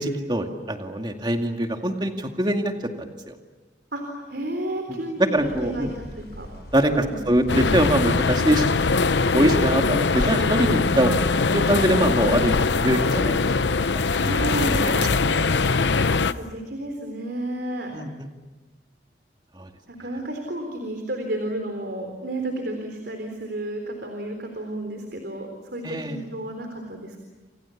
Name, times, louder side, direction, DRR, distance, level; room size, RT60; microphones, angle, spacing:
voice 1, 0.0-3.3 4.9-5.9 6.7-8.7 9.3-11.2 11.5-13.4 13.9-14.0 14.8-15.4 17.9-18.3 19.6-19.7 25.8-26.2, right 1 dB, 25° right, 4 dB, 2.1 m, -23 dB
voice 2, 3.9-6.5 6.8-7.2 9.4-9.9 14.1-14.9 15.9-17.9 19.9-27.2, right 1 dB, 65° right, 4 dB, 3.9 m, -31 dB
sound 1, 5.3-14.8, equal, 65° left, 7.8 m, -42 dB
sound 2, 7.5-16.3, left 4 dB, 80° left, 0.8 m, -22 dB
28.5 x 28.5 x 7.2 m, 1.2 s
head